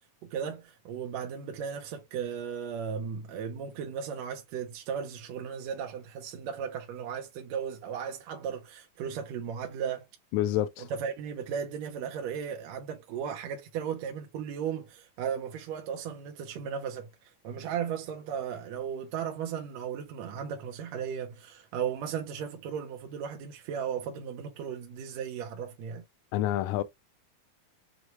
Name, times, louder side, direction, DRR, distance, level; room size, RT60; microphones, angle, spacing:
voice 1, 0.2-10.1 10.8-26.1, right 7 dB, 75° right, 1.8 m, -36 dB
voice 2, 10.3-10.9 26.3-26.8, left 13 dB, 80° left, 1.8 m, -28 dB
6.5 x 2.2 x 2.8 m
omnidirectional pair, 3.6 m